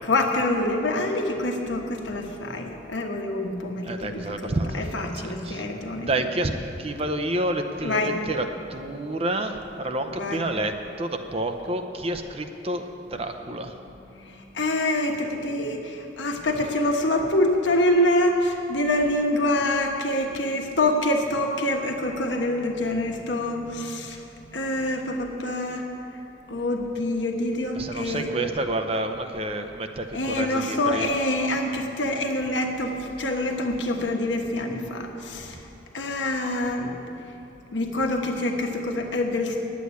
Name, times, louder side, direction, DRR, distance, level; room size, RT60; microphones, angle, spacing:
voice 1, 0.1-6.1 7.8-8.1 10.1-10.4 14.2-24.2 24.5-25.9 26.5-28.3 30.1-35.6 35.9-36.9 37.7-39.6, left 1 dB, 75° left, 2 dB, 1.3 m, -26 dB
voice 2, 3.8-5.6 6.0-6.5 6.8-13.7 27.7-31.1, right 1 dB, 30° right, 6 dB, 0.6 m, -29 dB
9.7 x 8.4 x 9.5 m, 2.9 s
head